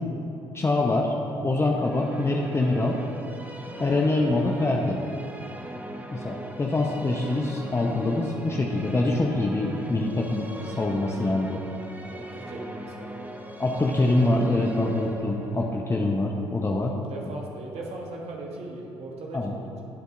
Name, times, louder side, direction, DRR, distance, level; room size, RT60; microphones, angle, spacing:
voice 1, 0.5-1.1 1.4-3.0 3.8-5.0 6.1-11.6 13.6-17.0 19.3-19.5, left 2 dB, 20° left, 0 dB, 0.8 m, -25 dB
sound 1, 1.6-17.6, right 1 dB, 15° right, 0.9 m, -40 dB
voice 2, 12.0-13.1 16.9-19.8, right 2 dB, 55° right, -2 dB, 1.5 m, -39 dB
16.0 x 8.1 x 2.6 m, 2.8 s
hypercardioid pair, 50°, 12 cm